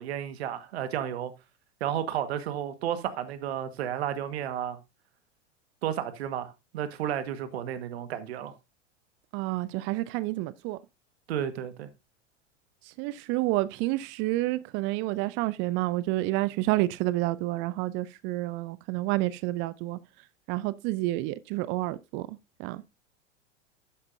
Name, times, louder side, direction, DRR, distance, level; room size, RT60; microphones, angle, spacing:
voice 1, 0.0-1.3 1.8-4.8 5.8-8.5 11.3-11.9, right 10 dB, 60° right, 1.6 m, -32 dB
voice 2, 9.3-10.8 13.0-20.0 20.5-22.3 22.6-22.8, right 18 dB, 35° right, 0.5 m, -29 dB
12.0 x 8.7 x 2.7 m
figure-of-eight pair, 90°, 36 cm